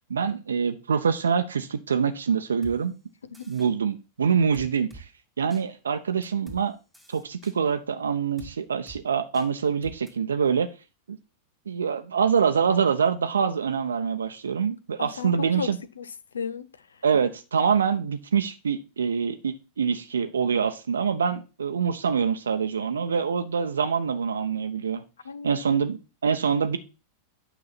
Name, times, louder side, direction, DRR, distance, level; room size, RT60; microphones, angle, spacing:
voice 1, 0.1-2.9 3.5-5.0 5.4-6.8 7.1-10.7 11.1-11.2 11.7-15.8 17.0-25.0 25.4-26.8, right 6 dB, 70° right, 0.7 m, -25 dB
sound 1, 2.6-2.8 3.3-3.7 4.5-5.0 5.5-5.6 6.2-6.6 6.9-7.6 8.4-8.5 8.9-9.0 9.3-9.5 9.8-10.1, right 3 dB, 5° left, 2.6 m, -45 dB
voice 2, 15.0-17.0 25.2-25.6, left 6 dB, 70° left, 0.6 m, -35 dB
9.0 x 5.9 x 4.1 m
figure-of-eight pair, 90°, 0 cm